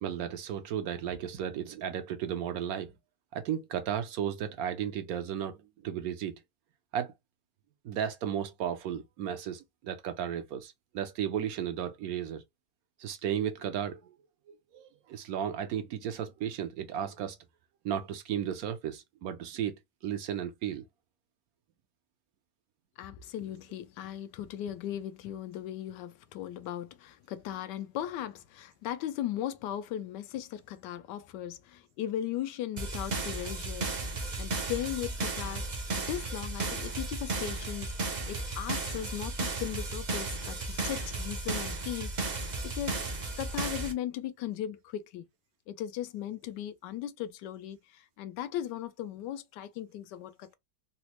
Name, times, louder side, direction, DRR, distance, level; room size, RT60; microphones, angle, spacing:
voice 1, 0.0-2.9 3.3-6.4 6.9-7.1 7.8-12.4 13.0-14.2 14.5-17.4 17.8-19.8 20.0-20.8, right 9 dB, 70° right, 0.9 m, -34 dB
voice 2, 23.0-33.9 34.4-37.9 38.3-45.2 45.7-50.6, left 11 dB, 90° left, 1.2 m, -37 dB
sound 1, 32.8-43.9, right 2 dB, 55° right, 0.5 m, -34 dB
4.0 x 2.1 x 2.9 m
omnidirectional pair, 1.8 m